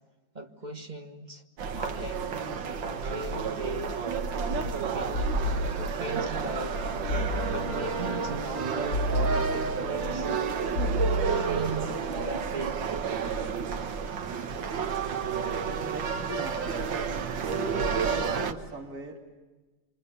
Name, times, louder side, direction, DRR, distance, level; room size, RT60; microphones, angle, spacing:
voice 1, 0.3-1.4 1.7-2.5 2.8-4.1 4.3-6.9 7.4-10.3 10.8-12.8, right 2 dB, 25° right, 1.7 m, -39 dB
sound 1, 1.6-18.5, right 5 dB, 90° right, 2.0 m, -30 dB
sound 2, 5.1-6.2 7.1-8.0 8.9-10.0 10.7-11.8, equal, 70° left, 2.1 m, -31 dB
voice 2, 15.9-16.9 17.4-19.2, right 1 dB, 55° right, 3.2 m, -39 dB
27.5 x 26.5 x 6.9 m
omnidirectional pair, 2.0 m